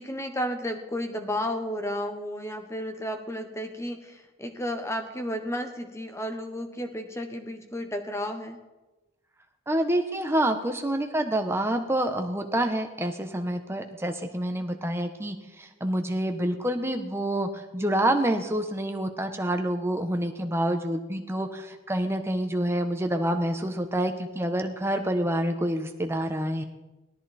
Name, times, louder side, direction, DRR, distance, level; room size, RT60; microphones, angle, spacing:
voice 1, 0.0-8.6, equal, 15° left, 6 dB, 1.3 m, -32 dB
voice 2, 9.7-26.6, right 1 dB, 10° right, 5 dB, 1.1 m, -27 dB
18.0 x 13.0 x 4.3 m, 1.1 s
head